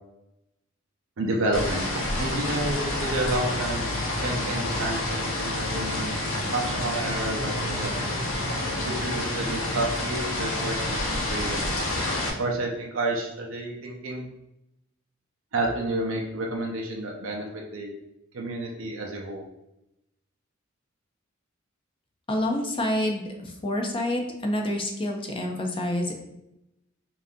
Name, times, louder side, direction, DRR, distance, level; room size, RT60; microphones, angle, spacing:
voice 1, 1.2-3.8 4.2-6.1 6.5-8.1 8.8-11.0 11.3-11.8 12.4-14.2 15.5-17.9 18.3-19.5, right 2 dB, 75° right, 0 dB, 0.6 m, -30 dB
sound 1, 1.5-12.3, left 1 dB, 75° left, 0.9 m, -28 dB
voice 2, 22.3-26.1, left 1 dB, 25° left, 1 dB, 0.5 m, -28 dB
5.4 x 2.6 x 2.7 m, 0.86 s
head